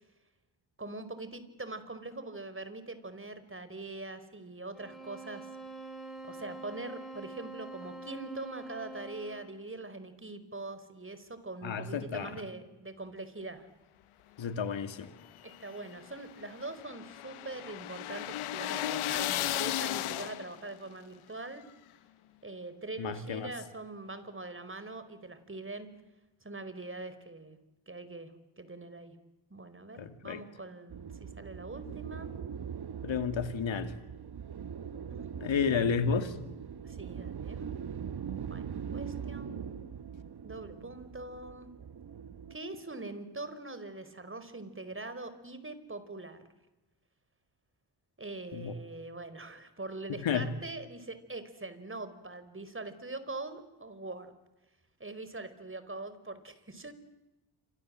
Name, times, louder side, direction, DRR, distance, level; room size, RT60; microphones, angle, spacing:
voice 1, 0.8-5.5 6.2-13.7 15.4-21.6 22.4-25.9 26.4-27.6 27.9-29.2 29.5-32.3 35.1-36.4 36.8-37.7 38.5-39.9 40.4-41.7 42.5-46.4 48.2-54.3 55.0-56.9, right 2 dB, 25° right, 12 dB, 5.0 m, -43 dB
sound 1, 4.7-9.6, right 2 dB, ahead, 7.2 m, -45 dB
voice 2, 11.6-12.3 14.4-15.1 23.0-23.5 30.0-30.4 33.0-33.9 35.4-36.4 48.5-48.7 50.2-50.5, left 6 dB, 70° left, 10 dB, 2.6 m, -31 dB
sound 2, 15.2-20.7, left 13 dB, 85° left, 1.3 m, -35 dB
sound 3, 30.9-42.6, right 7 dB, 50° right, 1.4 m, -41 dB
27.5 x 26.5 x 7.8 m, 1.0 s
supercardioid pair, 45°, 48 cm